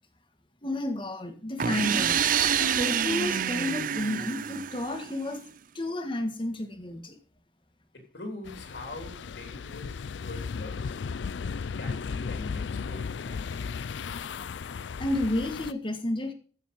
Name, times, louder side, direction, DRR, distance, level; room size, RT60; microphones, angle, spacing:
voice 1, 0.6-2.3 2.6-5.4 5.7-7.2 15.0-16.3, left 1 dB, 30° left, 1.8 m, -31 dB
sound 1, 1.6-5.3, right 8 dB, 50° right, 0.5 m, -27 dB
voice 2, 7.9-11.0 11.8-13.9, left 2 dB, 75° left, 3.4 m, -43 dB
sound 2, 8.5-15.7, left 5 dB, 90° left, 0.4 m, -35 dB
15.0 x 7.0 x 5.4 m
head